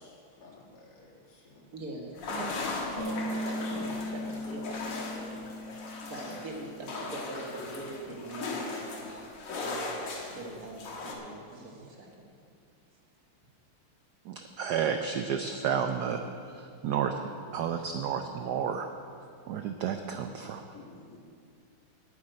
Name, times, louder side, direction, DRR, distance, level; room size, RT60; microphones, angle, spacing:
voice 1, 0.0-1.7 2.6-2.8 20.7-21.2, left 3 dB, 80° left, -3 dB, 3.0 m, -53 dB
voice 2, 1.7-2.6 2.9-8.9 9.2-10.1 10.3-12.2, right 2 dB, 45° right, 0 dB, 1.8 m, -42 dB
sound 1, 2.2-11.2, left 3 dB, 60° left, 2.0 m, -38 dB
Bass guitar, 3.0-9.2, left 1 dB, 25° left, 0.8 m, -40 dB
voice 3, 14.3-16.2 16.5-17.1 17.5-18.9 19.5-20.6, right 7 dB, 85° right, 6 dB, 0.9 m, -31 dB
9.4 x 7.7 x 9.1 m, 2.4 s
omnidirectional pair, 2.4 m